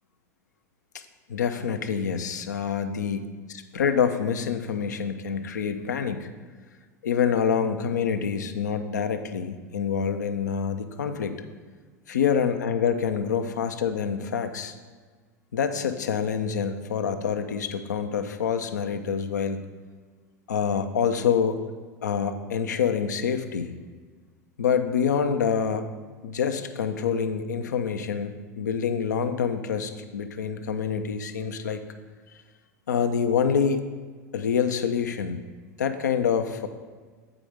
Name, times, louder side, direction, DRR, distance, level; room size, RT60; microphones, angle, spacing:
voice 1, 1.3-3.2 3.7-6.3 7.0-11.4 12.1-14.7 15.5-19.6 20.5-21.6 22.0-23.8 24.6-25.9 26.2-31.8 32.9-33.8 34.3-35.4 35.8-36.7, left 7 dB, 80° left, 8 dB, 0.6 m, -26 dB
7.7 x 5.0 x 5.1 m, 1.5 s
hypercardioid pair, 85°, 9 cm